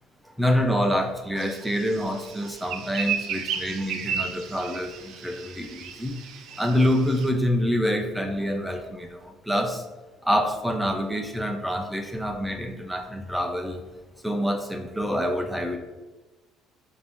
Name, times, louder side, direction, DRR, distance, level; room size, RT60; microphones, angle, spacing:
voice 1, 0.4-6.2 6.6-9.8 10.2-13.8 14.2-15.8, equal, ahead, 4 dB, 0.4 m, -26 dB
sound 1, 1.4-7.3, right 7 dB, 60° right, 0.4 m, -34 dB
4.5 x 2.6 x 3.4 m, 1.2 s
cardioid pair, 140°, 0 cm